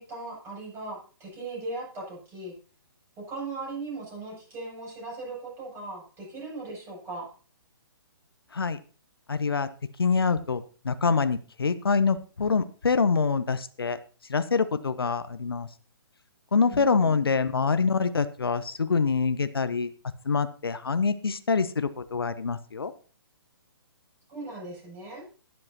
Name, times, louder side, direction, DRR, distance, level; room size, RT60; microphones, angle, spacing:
voice 1, 0.0-2.5 3.2-7.3 16.7-17.3 24.3-25.2, right 3 dB, 20° right, -3 dB, 7.8 m, -38 dB
voice 2, 9.3-9.7 10.0-14.0 14.3-15.7 16.5-19.9 20.2-22.9, left 5 dB, 75° left, 12 dB, 0.9 m, -25 dB
20.5 x 7.6 x 2.9 m, 0.36 s
figure-of-eight pair, 130°, 13 cm